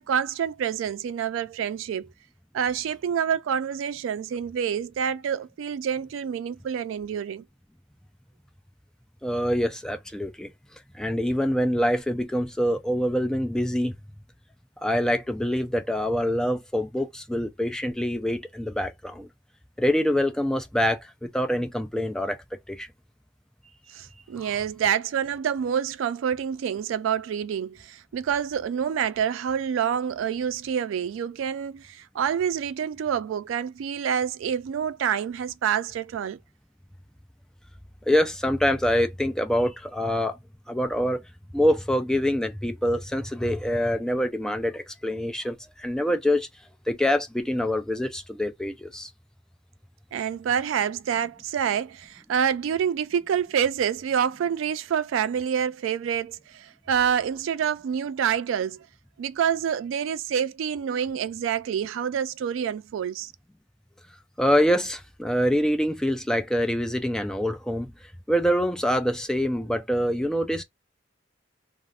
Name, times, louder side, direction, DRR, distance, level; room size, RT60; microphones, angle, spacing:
voice 1, 0.0-2.1 2.5-7.4 23.9-36.4 50.1-58.9 59.2-63.3, right 8 dB, 90° right, 0.3 m, -27 dB
voice 2, 9.2-10.5 10.9-13.9 14.8-19.3 19.8-22.4 22.7-22.9 24.4-24.5 38.1-40.4 40.7-41.2 41.5-46.5 46.9-49.1 64.4-67.9 68.3-70.6, equal, 5° left, 0.3 m, -25 dB
2.4 x 2.0 x 3.4 m
head